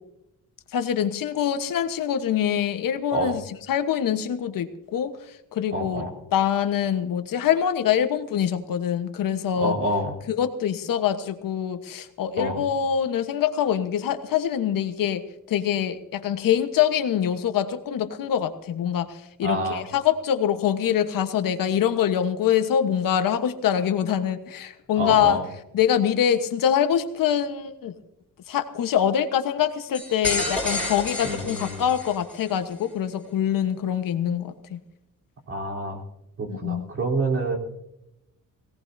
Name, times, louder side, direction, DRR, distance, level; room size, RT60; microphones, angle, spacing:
voice 1, 0.7-6.0 6.3-9.8 10.3-15.2 15.5-25.4 25.7-27.9 28.5-34.8 36.5-36.9, left 9 dB, 75° left, 9 dB, 1.3 m, -24 dB
voice 2, 5.7-6.1 9.6-10.1 12.4-12.6 19.4-19.8 25.0-25.4 31.2-31.9 35.5-36.0 36.4-37.6, right 1 dB, 40° right, -1 dB, 3.7 m, -27 dB
sound 1, 29.9-32.5, left 2 dB, 5° left, 7.4 m, -30 dB
21.5 x 17.5 x 2.7 m, 0.85 s
wide cardioid pair, 155°, 34 cm